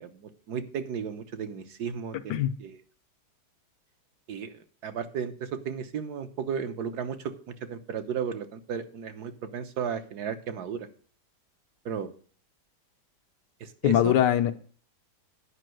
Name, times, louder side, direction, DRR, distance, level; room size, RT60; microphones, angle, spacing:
voice 1, 0.0-2.8 4.3-10.9 11.8-12.1 13.6-14.1, right 7 dB, 70° right, 8 dB, 1.5 m, -34 dB
voice 2, 13.8-14.5, left 11 dB, 90° left, 9 dB, 1.4 m, -22 dB
9.9 x 5.4 x 7.7 m, 0.43 s
omnidirectional pair, 1.8 m